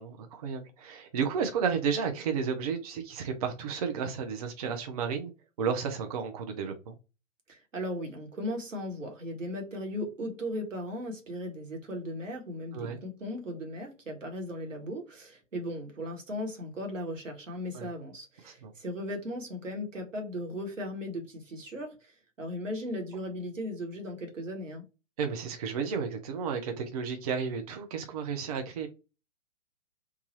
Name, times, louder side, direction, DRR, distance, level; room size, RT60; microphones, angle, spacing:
voice 1, 0.0-5.3 5.6-6.9 12.7-13.0 17.7-17.9 18.4-18.7 25.2-28.9, right 6 dB, 30° right, 0.4 m, -32 dB
voice 2, 7.5-22.1 22.4-24.8, equal, 80° right, 1.3 m, -37 dB
3.1 x 2.3 x 2.8 m
figure-of-eight pair, 125°, 38 cm